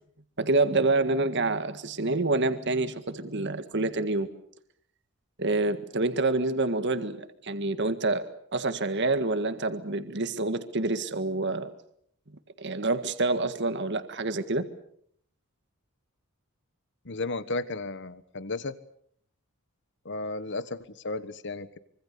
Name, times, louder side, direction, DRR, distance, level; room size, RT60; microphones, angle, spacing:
voice 1, 0.4-4.3 5.4-11.7 12.6-14.7, right 2 dB, 55° right, 10 dB, 1.8 m, -27 dB
voice 2, 17.0-18.8 20.0-21.8, left 3 dB, 55° left, 14 dB, 1.3 m, -34 dB
25.5 x 24.5 x 6.8 m, 0.65 s
head